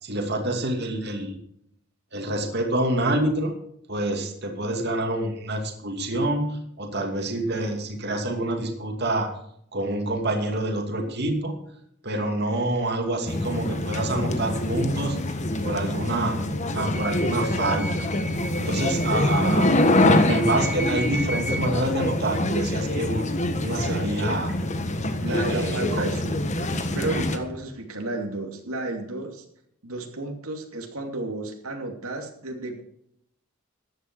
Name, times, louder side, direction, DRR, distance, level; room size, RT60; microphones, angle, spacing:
voice 1, 0.0-1.4 2.1-3.6 3.9-9.3 9.7-11.6 12.0-15.2 15.6-16.5 16.7-18.0 18.6-19.7 20.2-23.4 23.6-24.5 25.3-26.0, right 1 dB, 50° right, 2 dB, 2.6 m, -27 dB
sound 1, 13.3-27.4, left 1 dB, 35° left, 1.4 m, -25 dB
voice 2, 23.6-24.1 25.2-26.4 26.9-29.4 29.8-32.8, right 2 dB, 90° right, 2 dB, 2.6 m, -32 dB
14.5 x 11.0 x 4.7 m, 0.70 s
head